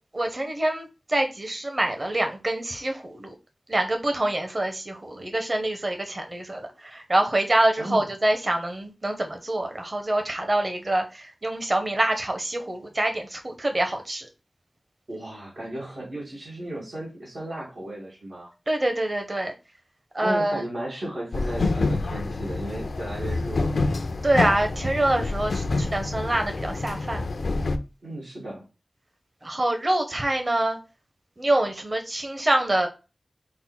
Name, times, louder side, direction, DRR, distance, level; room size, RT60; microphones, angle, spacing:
voice 1, 0.1-3.3 3.7-14.3 18.7-19.5 20.1-20.6 24.2-27.2 29.4-30.8 31.4-32.9, right 1 dB, 40° right, 4 dB, 0.8 m, -25 dB
voice 2, 15.1-18.5 20.2-23.8 28.0-28.6, right 1 dB, 90° right, -5 dB, 2.2 m, -35 dB
sound 1, 21.3-27.8, left 3 dB, 80° left, 0.4 m, -27 dB
5.6 x 2.0 x 4.2 m, 0.30 s
wide cardioid pair, 80°, 0 cm